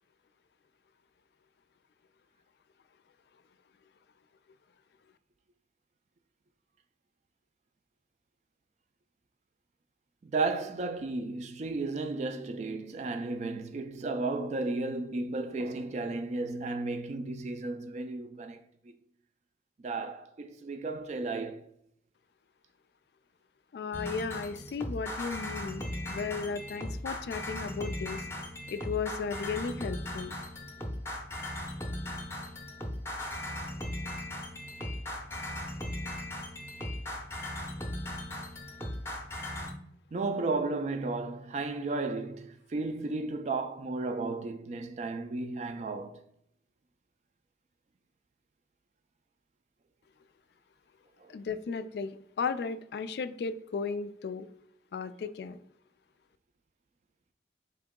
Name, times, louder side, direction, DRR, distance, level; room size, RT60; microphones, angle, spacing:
voice 1, 10.2-18.9 19.8-21.7 40.1-46.2 51.2-51.3, right 3 dB, 40° right, 0.3 m, -34 dB
voice 2, 23.7-28.3 28.7-30.3 51.3-54.5 54.9-55.6, left 5 dB, 65° left, 0.3 m, -35 dB
sound 1, 23.9-39.7, left 1 dB, 15° left, 0.6 m, -38 dB
4.5 x 2.9 x 3.6 m
head